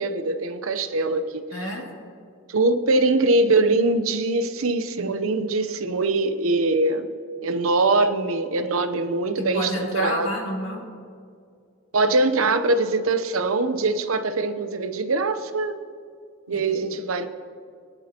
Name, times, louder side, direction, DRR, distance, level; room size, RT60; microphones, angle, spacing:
voice 1, 0.0-1.4 2.5-7.1 7.4-10.3 11.9-15.8 16.5-17.3, right 2 dB, 85° right, 9 dB, 0.8 m, -22 dB
voice 2, 1.5-1.9 9.4-10.9 16.5-17.0, equal, 65° left, -2 dB, 2.6 m, -30 dB
24.0 x 11.0 x 2.9 m, 2.3 s
head